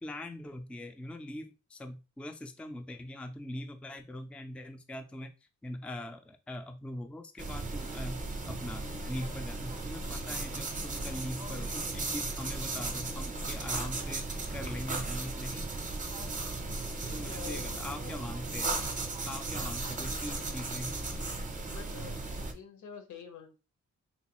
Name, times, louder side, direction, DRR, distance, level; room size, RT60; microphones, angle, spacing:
voice 1, 0.0-5.3 5.6-15.7 16.8-18.7 19.3-20.9, left 1 dB, 5° left, 6 dB, 0.3 m, -42 dB
sound 1, 7.4-22.5, right 3 dB, 25° right, 0.6 m, -36 dB
voice 2, 16.9-18.2 19.5-19.7 21.7-22.2 22.4-23.6, left 7 dB, 80° left, 6 dB, 0.9 m, -47 dB
3.9 x 2.2 x 2.9 m, 0.31 s
cardioid pair, 100°, 29 cm